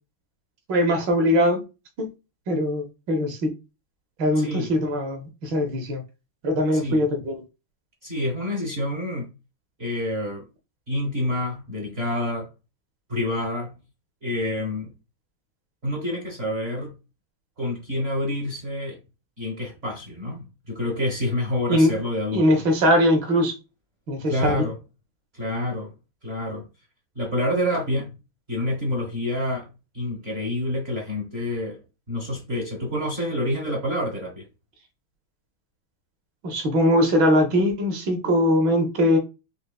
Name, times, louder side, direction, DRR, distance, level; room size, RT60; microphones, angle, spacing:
voice 1, 0.7-1.6 2.0-2.1 2.5-3.5 4.2-6.0 6.4-7.4 21.7-21.9 22.3-23.5 24.1-24.6 36.4-39.2, equal, 65° right, 1.3 m, -21 dB
voice 2, 4.4-4.7 6.7-7.1 8.0-9.3 9.8-10.5 10.9-12.5 13.1-13.7 14.2-14.9 15.8-16.9 17.6-19.0 19.4-22.6 24.3-24.7 25.3-25.9 26.2-26.6 27.2-28.1 28.5-29.7 29.9-31.8 32.1-34.4, left 1 dB, 45° right, 0.8 m, -27 dB
5.3 x 2.8 x 2.2 m
omnidirectional pair, 2.4 m